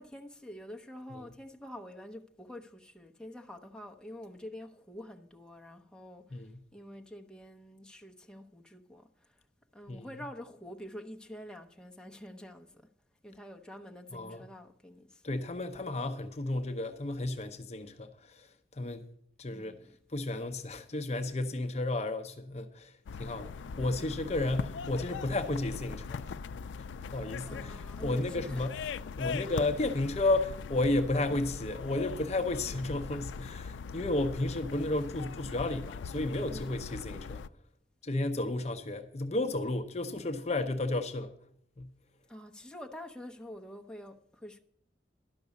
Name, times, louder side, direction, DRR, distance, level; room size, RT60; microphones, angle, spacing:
voice 1, 0.0-9.4 9.7-12.9 13.2-15.2 19.5-20.0 27.5-28.7 36.5-36.7 42.3-44.6, left 1 dB, 5° left, 0.8 m, -47 dB
voice 2, 14.1-14.5 15.2-18.5 18.7-19.1 19.4-19.8 20.1-26.3 27.0-28.8 29.2-37.5 38.0-41.3 41.8-41.9, left 2 dB, 35° left, 0.7 m, -32 dB
sound 1, 23.1-37.5, left 5 dB, 85° left, 0.4 m, -41 dB
11.5 x 6.1 x 8.1 m
head